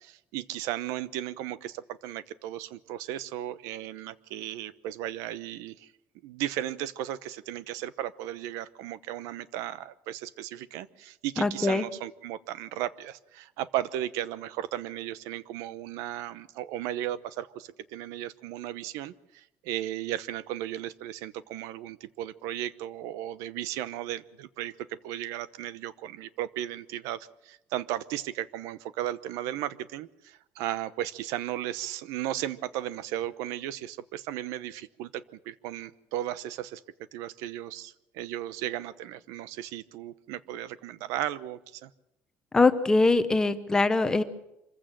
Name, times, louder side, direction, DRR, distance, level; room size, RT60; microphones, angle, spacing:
voice 1, 0.0-5.9 6.2-36.8 37.1-41.9, right 13 dB, 85° right, 17 dB, 0.9 m, -35 dB
voice 2, 11.4-11.8 42.5-44.2, left 3 dB, 15° left, 10 dB, 0.8 m, -22 dB
25.5 x 15.5 x 7.6 m, 0.89 s
cardioid pair, 165°, 5 cm